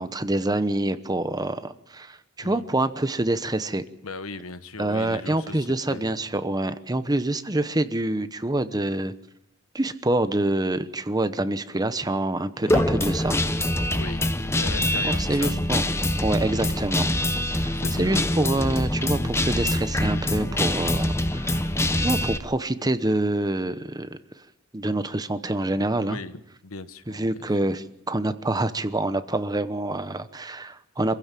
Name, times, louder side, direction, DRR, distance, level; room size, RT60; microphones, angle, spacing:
voice 1, 0.0-3.8 4.8-9.1 9.7-13.4 15.0-15.8 16.2-17.1 17.6-21.6 22.0-24.2 24.7-26.2 27.1-31.2, right 2 dB, 20° right, 11 dB, 0.9 m, -26 dB
voice 2, 4.0-6.1 12.6-12.9 13.9-15.6 17.3-18.2 26.0-27.2, left 3 dB, 75° left, 12 dB, 1.2 m, -38 dB
Guitar, 12.7-22.4, left 1 dB, 10° left, 0.9 m, -24 dB
26.5 x 16.0 x 7.6 m, 0.86 s
head